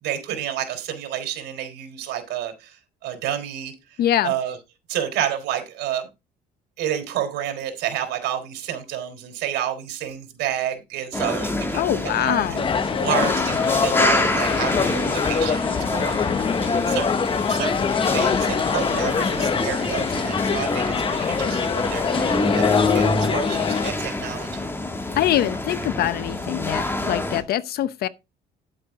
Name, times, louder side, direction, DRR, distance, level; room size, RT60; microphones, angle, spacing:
voice 1, 0.0-3.7 4.2-4.6 4.9-6.1 6.8-12.6 13.0-17.2 17.5-24.5, right 10 dB, 85° right, 3.5 m, -30 dB
voice 2, 4.0-4.3 11.7-12.6 25.2-28.1, left 12 dB, 70° left, 0.8 m, -23 dB
sound 1, 11.1-27.4, left 2 dB, 15° left, 2.0 m, -26 dB
sound 2, 12.6-23.9, left 6 dB, 30° left, 0.6 m, -24 dB
10.5 x 7.7 x 3.6 m
cardioid pair, 110°, 17 cm